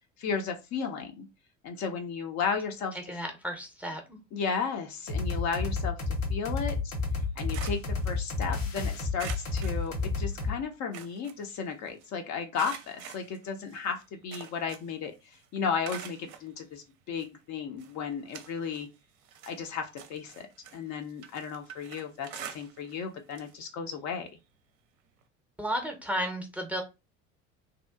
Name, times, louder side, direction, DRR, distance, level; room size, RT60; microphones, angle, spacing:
voice 1, 0.2-1.3 1.6-3.0 4.3-6.0 6.3-6.8 7.4-18.9 19.5-20.5 20.7-24.3, left 6 dB, 45° left, 5 dB, 0.6 m, -34 dB
voice 2, 3.1-4.2 25.6-26.8, equal, 5° right, 3 dB, 0.6 m, -33 dB
sound 1, 5.1-10.6, left 3 dB, 75° left, 0.9 m, -31 dB
sound 2, 7.1-8.7 9.2-10.5 10.7-12.1 12.5-15.0 15.3-16.5 17.2-17.3 17.8-18.9 19.2-23.0 23.3-23.5 23.9-24.0 25.2-25.3, right 9 dB, 50° right, 0.6 m, -46 dB
2.8 x 2.3 x 2.3 m, 0.25 s
figure-of-eight pair, 65°, 39 cm